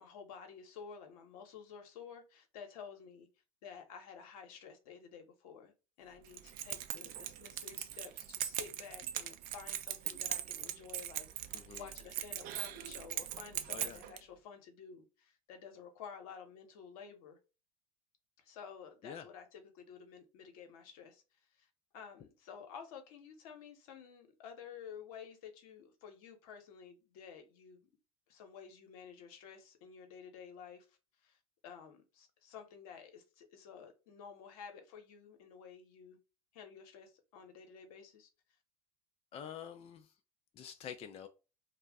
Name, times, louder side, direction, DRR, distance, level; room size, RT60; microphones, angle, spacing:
voice 1, 0.0-3.3 3.6-17.4 18.4-21.2 21.5-21.7 21.9-27.9 28.3-36.2 36.5-38.3, left 6 dB, 70° left, 0.8 m, -52 dB
Keys jangling, 6.3-14.2, right 11 dB, 50° right, 0.4 m, -40 dB
voice 2, 11.5-11.9 13.7-14.0 19.0-19.3 39.3-40.1 40.5-41.3, left 8 dB, 30° left, 0.4 m, -47 dB
2.4 x 2.0 x 3.4 m
hypercardioid pair, 80°, 19 cm